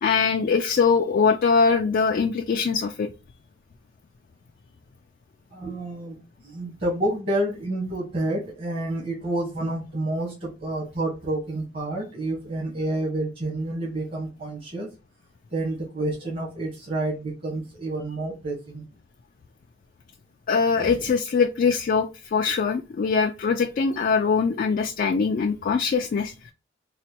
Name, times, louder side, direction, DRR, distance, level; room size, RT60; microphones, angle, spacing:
voice 1, 0.0-3.1 20.5-26.3, left 5 dB, 45° left, 5 dB, 0.3 m, -22 dB
voice 2, 5.5-14.9 15.5-18.8 20.8-21.0, right 1 dB, 50° right, -4 dB, 1.3 m, -29 dB
4.0 x 2.2 x 2.8 m, 0.30 s
head